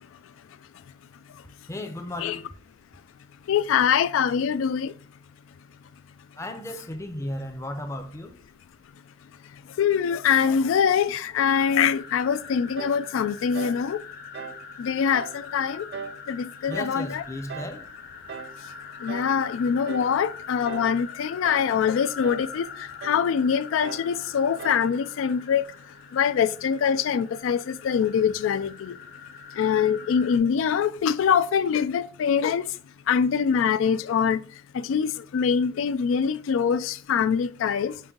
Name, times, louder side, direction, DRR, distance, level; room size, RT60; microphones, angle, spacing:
voice 1, 1.7-2.5 6.4-8.3 10.7-10.8 16.7-17.9, left 1 dB, 15° left, 0.5 m, -35 dB
voice 2, 3.5-5.0 9.8-14.0 14.8-15.9 16.3-17.2 19.0-25.6 26.1-29.0 29.5-32.8 33.1-34.4 34.7-38.0, left 7 dB, 90° left, 0.3 m, -24 dB
sound 1, 11.5-30.4, left 6 dB, 50° left, 0.7 m, -43 dB
sound 2, 12.8-13.1 13.5-13.8 14.3-14.6 15.1-15.4 15.9-16.2 16.7-17.0 17.5-17.8 18.3-18.6 19.1-19.4 19.9-20.2 20.7-21.0 21.4-21.8 22.2-22.5 23.0-23.3 23.8-24.1 24.6-24.9, right 6 dB, 55° right, 0.3 m, -38 dB
5.4 x 2.6 x 3.6 m
head